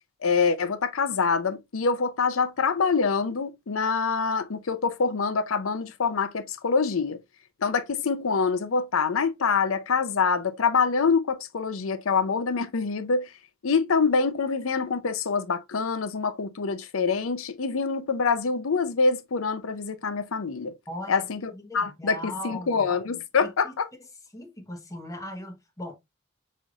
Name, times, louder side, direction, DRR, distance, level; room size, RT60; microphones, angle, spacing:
voice 1, 0.2-7.2 7.6-13.3 13.6-20.7 21.1-23.9, left 5 dB, 75° left, 0.6 m, -25 dB
voice 2, 20.9-21.3 21.5-22.9 23.4-23.7 24.3-25.9, left 1 dB, 15° left, 1.0 m, -38 dB
5.5 x 3.1 x 2.4 m
head